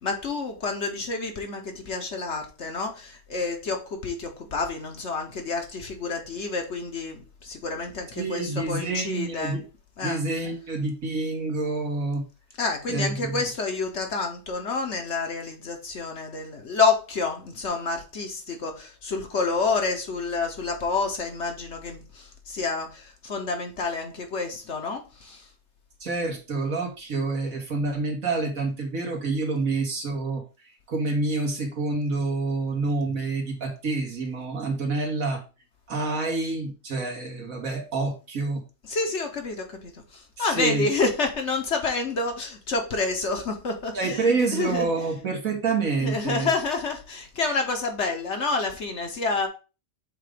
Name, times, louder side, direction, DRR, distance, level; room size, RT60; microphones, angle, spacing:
voice 1, 0.0-9.6 10.0-10.2 12.6-25.5 38.9-44.3 44.5-44.9 46.0-49.5, left 4 dB, 55° left, 4 dB, 1.3 m, -28 dB
voice 2, 8.2-9.6 10.0-12.2 12.9-13.4 26.0-30.4 30.9-35.4 35.9-38.6 40.4-40.9 43.9-46.5, right 3 dB, 70° right, 1 dB, 2.1 m, -27 dB
7.5 x 2.6 x 5.1 m, 0.32 s
omnidirectional pair, 1.5 m